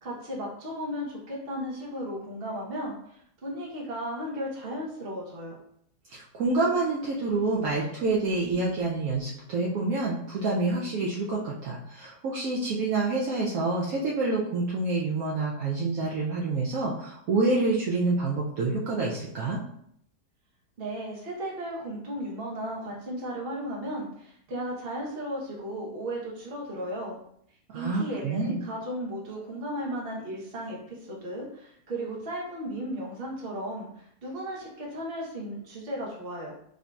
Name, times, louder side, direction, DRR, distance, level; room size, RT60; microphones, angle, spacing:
voice 1, 0.0-5.5 20.8-27.2 27.7-36.6, equal, 40° right, -3 dB, 1.0 m, -35 dB
voice 2, 6.1-19.6 27.7-28.6, right 3 dB, 70° right, -4 dB, 1.0 m, -27 dB
4.9 x 2.7 x 2.3 m, 0.69 s
omnidirectional pair, 1.7 m